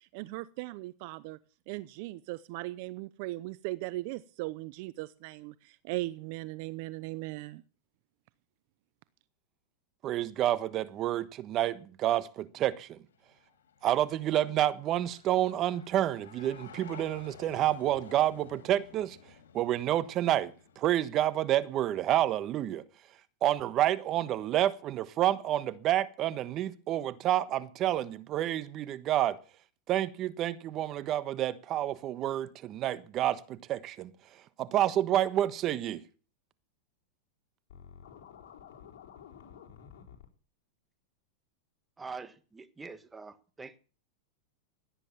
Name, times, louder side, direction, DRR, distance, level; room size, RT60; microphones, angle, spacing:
voice 1, 0.0-1.4 1.7-7.6, right 19 dB, 55° right, 0.7 m, -38 dB
voice 2, 10.0-13.0 13.8-19.2 19.5-22.8 23.4-29.4 29.9-34.1 34.6-36.0, right 12 dB, 40° right, 1.3 m, -29 dB
sound 1, 13.1-20.9, left 7 dB, 90° left, 3.0 m, -53 dB
Scratching (performance technique), 37.7-40.3, left 8 dB, 65° left, 4.8 m, -51 dB
voice 3, 42.0-43.8, right 4 dB, 15° right, 1.5 m, -44 dB
17.0 x 9.9 x 7.1 m
hypercardioid pair, 120°, 0 cm